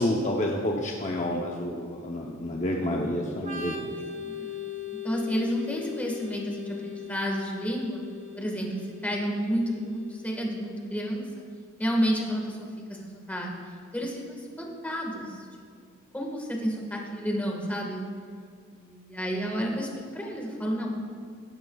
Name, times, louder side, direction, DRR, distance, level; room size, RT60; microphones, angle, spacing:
voice 1, 0.0-4.0, left 1 dB, 35° left, 0 dB, 0.7 m, -29 dB
Organ, 3.4-10.9, left 7 dB, 40° right, 1.3 m, -40 dB
voice 2, 4.1-4.7 5.0-8.0 8.3-11.3 11.8-13.5 13.9-15.4 15.7-15.8 16.1-18.0 18.7-20.9, equal, 10° left, -1 dB, 1.6 m, -31 dB
17.0 x 12.0 x 2.4 m, 2.1 s
head